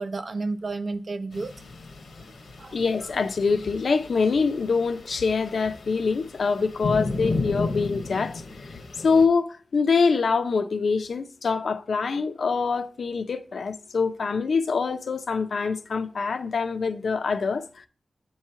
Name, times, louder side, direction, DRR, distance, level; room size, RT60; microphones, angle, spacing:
voice 1, 0.0-1.5 2.2-2.8, right 3 dB, 45° right, 0.5 m, -32 dB
sound 1, 1.3-9.3, left 3 dB, 90° left, 1.0 m, -34 dB
voice 2, 2.7-17.9, left 4 dB, 70° left, 0.5 m, -25 dB
8.3 x 3.1 x 5.6 m
wide cardioid pair, 135°, 0 cm